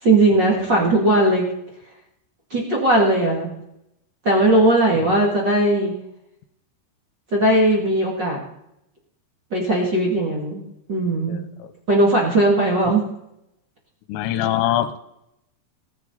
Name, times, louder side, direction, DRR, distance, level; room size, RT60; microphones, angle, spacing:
voice 1, 0.0-1.5 2.5-3.5 4.2-5.9 7.3-8.4 9.5-10.6 10.9-11.4 11.9-13.0, right 1 dB, 35° right, -2 dB, 2.1 m, -18 dB
voice 2, 11.3-11.7 14.1-15.0, left 12 dB, 75° left, 11 dB, 2.9 m, -24 dB
18.5 x 9.2 x 4.1 m, 0.80 s
omnidirectional pair, 5.5 m